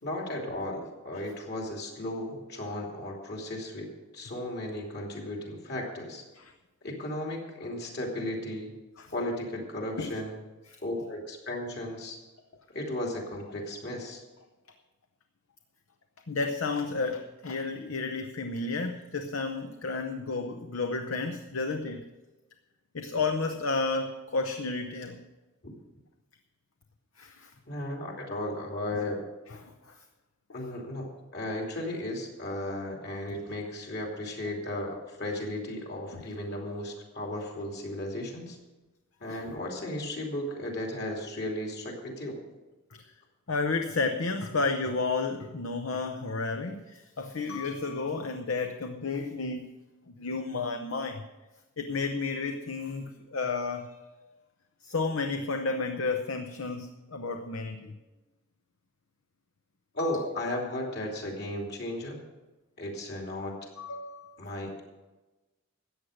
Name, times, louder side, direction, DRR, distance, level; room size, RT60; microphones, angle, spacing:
voice 1, 0.0-6.3 6.8-8.7 9.1-10.4 10.8-12.2 12.7-14.2 27.7-29.2 30.5-38.6 39.2-42.4 59.9-62.2 62.8-63.7 64.4-64.8, left 1 dB, 45° left, 0 dB, 2.8 m, -35 dB
voice 2, 16.3-22.0 22.9-25.2 27.2-27.5 29.6-29.7 39.4-39.5 43.5-49.7 50.2-51.2 51.8-53.9 54.9-58.0 60.0-60.2 63.8-64.3, left 3 dB, 65° left, 6 dB, 0.7 m, -32 dB
14.0 x 8.7 x 6.5 m, 1.1 s
head